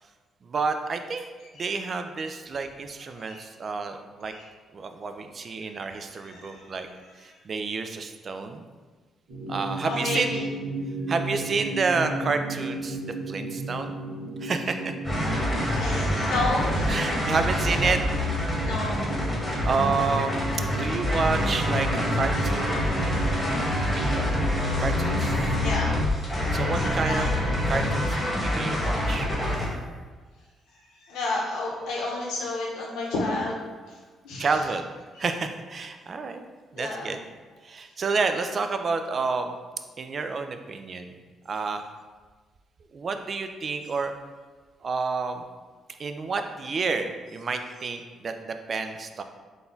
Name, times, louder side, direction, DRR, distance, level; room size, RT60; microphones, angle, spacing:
voice 1, 0.4-1.2 1.5-4.3 4.7-6.9 7.2-8.6 9.5-10.4 11.1-13.0 13.3-13.9 14.4-14.9 16.9-18.0 19.6-23.4 23.7-24.3 24.8-25.5 26.5-27.3 27.7-29.3 34.4-34.9 35.2-36.4 36.7-37.2 37.6-39.6 40.0-41.1 41.5-41.8 42.9-44.1 44.8-45.4 46.0-49.2, right 4 dB, 45° right, 7 dB, 0.3 m, -29 dB
voice 2, 6.2-6.6 9.8-10.4 15.7-16.9 18.5-19.0 25.6-26.0 26.5-27.4 28.5-28.7 31.0-33.6 34.2-34.5 36.7-37.1, left 2 dB, 85° left, -3 dB, 0.9 m, -31 dB
sound 1, 9.3-25.7, right 3 dB, 70° right, 1.1 m, -34 dB
sound 2, 15.0-29.6, left 1 dB, 15° left, 1.1 m, -26 dB
3.9 x 2.3 x 3.9 m, 1.4 s
cardioid pair, 90°, 0 cm